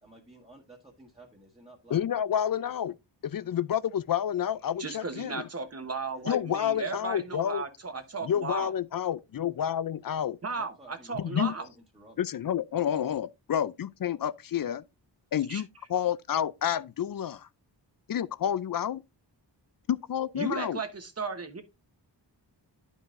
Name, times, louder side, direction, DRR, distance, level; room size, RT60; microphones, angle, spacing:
voice 1, 0.0-2.0 6.1-6.2 7.9-8.0 10.1-10.2 10.5-12.2, right 2 dB, 15° right, 1.4 m, -54 dB
voice 2, 1.9-2.9 3.2-5.5 6.3-7.6 8.2-10.4 11.1-11.5 12.2-14.8 15.3-17.5 18.1-19.0 19.9-20.8, left 9 dB, 50° left, 0.4 m, -29 dB
voice 3, 4.8-8.7 10.4-11.7 15.5-15.6 20.4-21.6, right 4 dB, 35° right, 1.0 m, -35 dB
11.5 x 5.4 x 2.5 m
wide cardioid pair, 160°, 44 cm